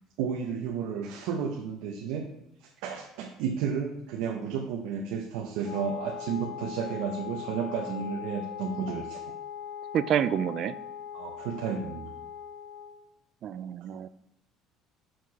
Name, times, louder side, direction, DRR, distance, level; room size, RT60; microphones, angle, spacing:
voice 1, 0.2-2.3 2.6-9.2 11.1-12.1, right 6 dB, 85° right, 2 dB, 0.7 m, -32 dB
Wind instrument woodwind instrument, 5.6-13.0, left 8 dB, 65° left, 1.0 m, -40 dB
voice 2, 9.9-10.7 13.4-14.1, right 9 dB, 45° right, 15 dB, 0.3 m, -28 dB
6.0 x 4.7 x 4.7 m, 0.83 s
cardioid pair, 140°, 0 cm